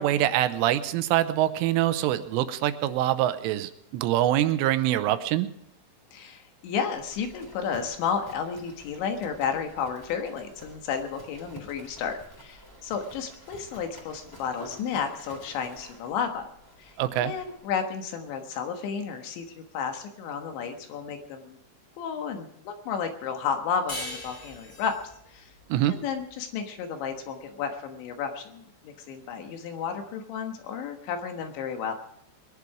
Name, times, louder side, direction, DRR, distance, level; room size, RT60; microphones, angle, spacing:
voice 1, 0.0-5.5 17.0-17.3 25.7-25.9, right 13 dB, 85° right, 11 dB, 3.3 m, -24 dB
voice 2, 6.1-16.4 16.8-21.6 22.0-25.0 25.3-25.5 25.8-31.9, left 6 dB, 70° left, 5 dB, 3.5 m, -32 dB
Livestock farm animals working animals, 6.9-17.7, equal, 5° left, 2.5 m, -50 dB
sound 1, 23.9-27.0, left 1 dB, 45° left, 0.3 m, -41 dB
21.5 x 11.0 x 4.8 m, 0.70 s
omnidirectional pair, 5.7 m